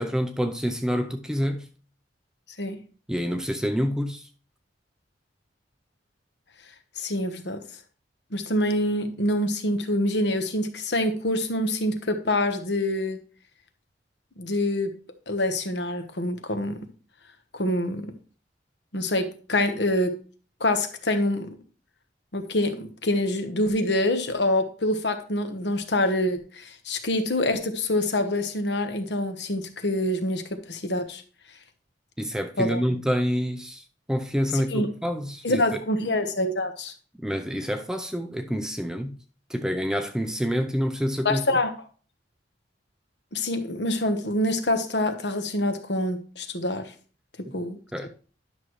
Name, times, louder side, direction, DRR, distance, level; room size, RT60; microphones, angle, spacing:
voice 1, 0.0-1.7 3.1-4.3 32.2-35.8 37.2-39.2 39.5-41.6 47.5-47.6 47.9-48.1, equal, 5° right, 0.5 m, -27 dB
voice 2, 7.0-7.6 8.3-13.2 14.4-14.9 15.3-16.8 17.5-18.1 18.9-19.2 19.5-20.1 20.6-21.5 22.3-26.4 26.8-30.4 30.7-31.2 32.6-32.8 34.7-34.9 35.4-36.9 41.2-41.7 43.3-46.8 47.5-47.8, left 1 dB, 65° left, 1.2 m, -25 dB
11.0 x 6.3 x 3.1 m
head